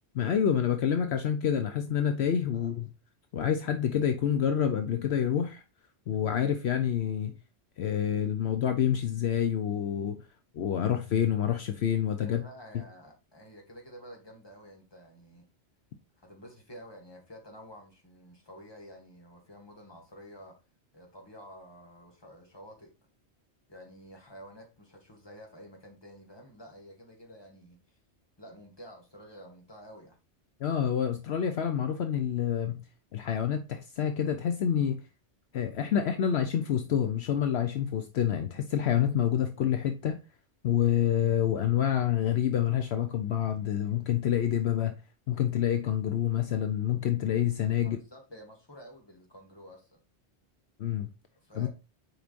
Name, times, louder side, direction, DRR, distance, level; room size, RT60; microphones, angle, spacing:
voice 1, 0.1-2.9 3.3-5.6 6.1-7.4 7.8-10.3 10.5-12.4 30.6-32.8 33.1-35.0 35.5-40.2 40.6-45.0 45.3-48.0 50.8-51.1 51.6-51.7, left 9 dB, 70° left, 0.9 m, -27 dB
voice 2, 2.5-2.9 12.2-15.5 16.2-20.6 20.9-22.9 23.7-28.0 28.4-30.2 47.8-50.0 51.4-51.7, equal, 20° left, 1.7 m, -50 dB
7.9 x 4.9 x 2.5 m
omnidirectional pair, 1.2 m